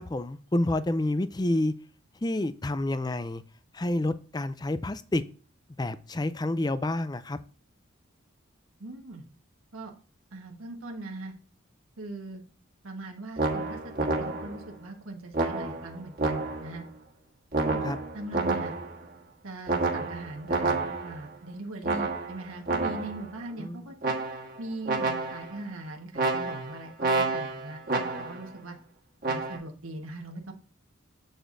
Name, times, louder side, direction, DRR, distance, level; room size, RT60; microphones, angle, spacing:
voice 1, 0.0-1.7 2.2-3.4 3.7-5.2 5.8-7.4 17.8-18.0 23.5-23.9, left 1 dB, 20° left, 13 dB, 0.4 m, -29 dB
voice 2, 8.8-9.2 9.7-9.9 10.3-11.3 12.0-12.4 12.8-13.8 14.2-16.8 17.6-17.8 18.1-18.8 19.4-24.1 24.6-28.7 29.3-30.5, right 2 dB, 90° right, 2 dB, 1.4 m, -40 dB
sound 1, 13.4-14.7 15.3-16.8 17.5-19.0 19.7-21.3 21.8-23.3 24.0-24.6 24.8-25.6 26.1-28.5 29.2-29.6, right 3 dB, 45° right, 1.5 m, -29 dB
8.2 x 7.8 x 2.6 m, 0.40 s
head